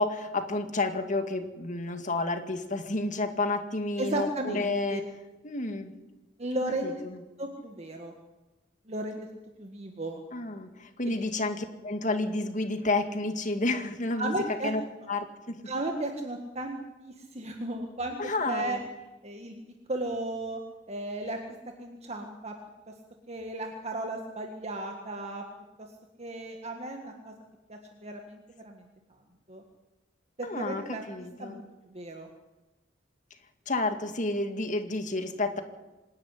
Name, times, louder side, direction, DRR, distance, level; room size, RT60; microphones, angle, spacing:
voice 1, 0.0-5.0 5.4-5.9 6.8-7.2 10.3-14.3 14.6-14.8 15.1-15.6 18.2-18.8 30.4-31.6 33.7-35.6, left 2 dB, 45° left, 7 dB, 2.1 m, -30 dB
voice 2, 4.0-5.0 6.4-6.9 7.4-8.1 8.9-9.3 9.6-10.2 11.0-11.2 14.2-14.7 15.7-18.2 18.5-18.8 19.2-19.5 19.9-20.6 20.9-21.4 21.8-22.5 23.3-25.4 26.2-27.3 27.7-28.9 29.5-29.6 30.4-31.0 31.4-31.6 31.9-32.3, right 1 dB, 35° right, 3 dB, 1.8 m, -34 dB
25.5 x 10.5 x 9.9 m, 1.1 s
head